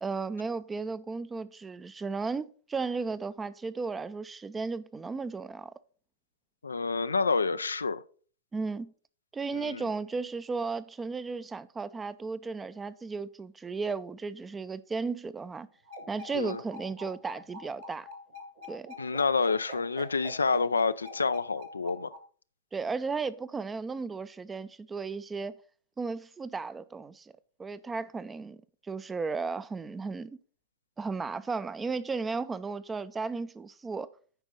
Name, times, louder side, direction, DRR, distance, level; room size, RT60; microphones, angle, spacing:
voice 1, 0.0-5.7 8.5-8.9 9.3-15.7 16.1-18.1 18.7-18.9 22.7-25.5 26.0-27.3 27.6-28.6 28.9-30.4 31.0-34.1, right 4 dB, 15° right, 0.5 m, -35 dB
voice 2, 6.6-8.0 9.5-9.8 16.3-16.6 19.0-22.1, left 4 dB, 80° left, 0.4 m, -28 dB
sound 1, 15.9-22.2, equal, 55° right, 1.9 m, -44 dB
9.0 x 5.2 x 5.1 m
figure-of-eight pair, 100°, 0 cm